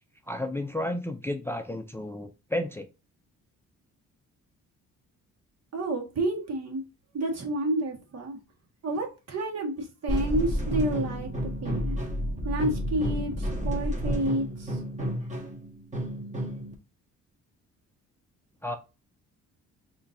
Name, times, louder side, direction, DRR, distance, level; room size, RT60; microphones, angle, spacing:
voice 1, 0.3-2.9 18.6-18.8, left 1 dB, 10° left, 0.5 m, -32 dB
voice 2, 5.7-6.8 7.1-8.4 8.8-12.0 12.4-14.8, right 1 dB, 55° right, 1.7 m, -30 dB
sound 1, 10.1-16.7, equal, 25° right, 1.6 m, -31 dB
6.0 x 3.1 x 2.7 m
cardioid pair, 90°, 30 cm